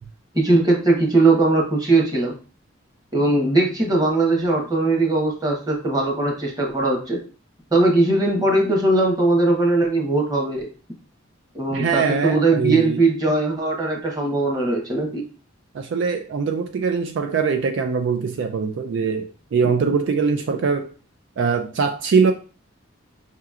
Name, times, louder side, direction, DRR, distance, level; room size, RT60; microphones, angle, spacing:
voice 1, 0.3-2.3 3.1-7.2 7.7-10.7 11.5-15.2, right 2 dB, 20° right, 1.0 m, -20 dB
voice 2, 11.7-13.0 15.7-20.9 21.4-22.3, right 5 dB, 65° right, 0.3 m, -22 dB
5.6 x 2.9 x 2.4 m
head